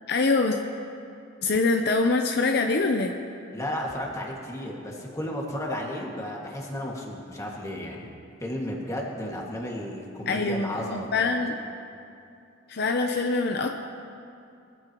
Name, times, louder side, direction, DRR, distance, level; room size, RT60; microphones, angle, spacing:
voice 1, 0.1-0.6 1.4-3.1 10.3-11.6 12.7-13.7, left 3 dB, 60° left, 4 dB, 0.7 m, -24 dB
voice 2, 3.5-8.1 8.4-11.3, left 1 dB, 15° left, -2 dB, 2.0 m, -33 dB
22.0 x 14.5 x 3.0 m, 2.6 s
head